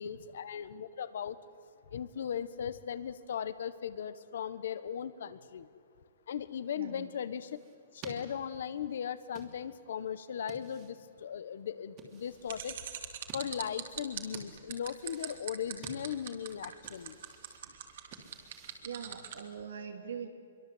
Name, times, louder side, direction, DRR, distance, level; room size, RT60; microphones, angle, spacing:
voice 1, 0.0-1.4 1.9-5.7 6.3-7.6 7.9-12.8 13.3-17.1, left 8 dB, 60° left, 14 dB, 1.4 m, -38 dB
voice 2, 6.8-7.1 17.1-18.3 18.8-20.3, right 7 dB, 85° right, 3 dB, 3.6 m, -44 dB
sound 1, 7.1-19.5, right 4 dB, 25° right, 2.8 m, -54 dB
sound 2, 12.5-19.4, right 10 dB, 50° right, 2.8 m, -41 dB
26.5 x 23.5 x 8.1 m, 2.3 s
hypercardioid pair, 175°, 0 cm